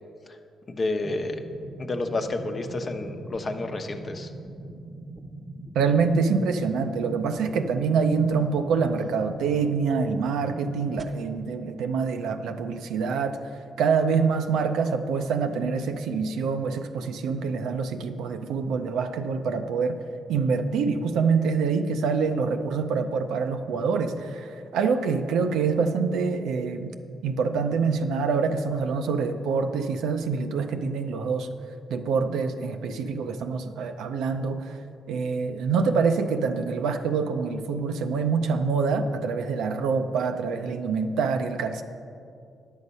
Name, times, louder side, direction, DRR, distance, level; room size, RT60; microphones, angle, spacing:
voice 1, 0.7-1.4 1.8-4.3, left 2 dB, 40° left, 5 dB, 0.8 m, -30 dB
sound 1, 1.0-11.0, right 1 dB, 35° right, 0.8 m, -41 dB
voice 2, 5.7-13.4 13.8-20.0 20.3-26.9 27.2-31.5 31.9-34.7 35.1-41.8, right 5 dB, 85° right, 7 dB, 0.5 m, -26 dB
9.8 x 6.5 x 5.4 m, 2.5 s
cardioid pair, 70°, 0 cm